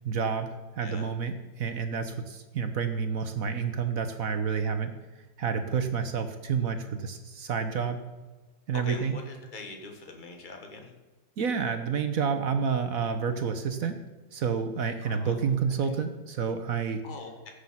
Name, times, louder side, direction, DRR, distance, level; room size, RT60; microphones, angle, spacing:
voice 1, 0.0-4.9 5.4-8.0 8.7-9.2 11.4-14.0 14.3-17.0, right 6 dB, 55° right, 8 dB, 1.1 m, -29 dB
voice 2, 8.8-10.9 15.0-15.5 17.0-17.5, left 3 dB, 25° left, 3 dB, 1.8 m, -43 dB
15.5 x 6.6 x 5.7 m, 1.3 s
omnidirectional pair, 2.0 m